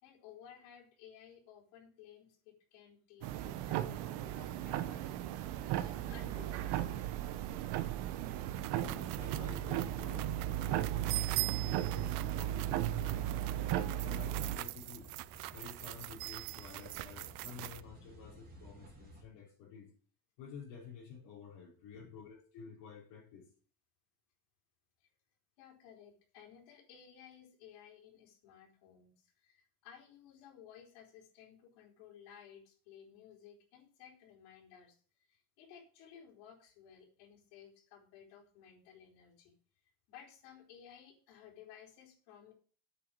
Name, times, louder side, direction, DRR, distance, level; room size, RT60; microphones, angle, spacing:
voice 1, 0.0-7.0 21.9-22.2 25.0-25.1 25.6-39.6 40.1-42.5, left 8 dB, 85° left, 2 dB, 4.5 m, -57 dB
sound 1, 3.2-14.6, right 12 dB, 55° right, 1.1 m, -36 dB
sound 2, 6.5-19.2, right 1 dB, 20° right, 2.9 m, -57 dB
sound 3, 8.2-17.8, right 22 dB, 75° right, 0.6 m, -43 dB
voice 2, 8.8-13.6 13.9-15.1 15.5-19.9 20.4-23.5, left 6 dB, 60° left, -5 dB, 4.3 m, -51 dB
8.6 x 7.2 x 7.6 m, 0.41 s
cardioid pair, 170°, 48 cm